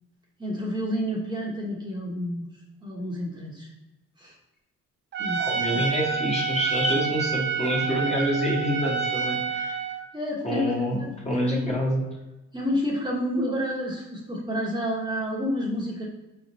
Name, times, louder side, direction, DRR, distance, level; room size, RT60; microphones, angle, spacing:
voice 1, 0.4-2.5 2.8-3.7 4.2-4.4 5.2-5.5 10.1-10.7 11.0-11.1 11.4-11.7 12.5-16.0, equal, 15° right, -4 dB, 1.0 m, -29 dB
Trumpet, 5.1-10.0, right 6 dB, 40° right, 0.5 m, -28 dB
voice 2, 5.4-9.7 10.4-11.0 11.2-12.0, equal, 20° left, -3 dB, 1.2 m, -27 dB
4.8 x 3.1 x 2.7 m, 1.0 s
cardioid pair, 90°, 30 cm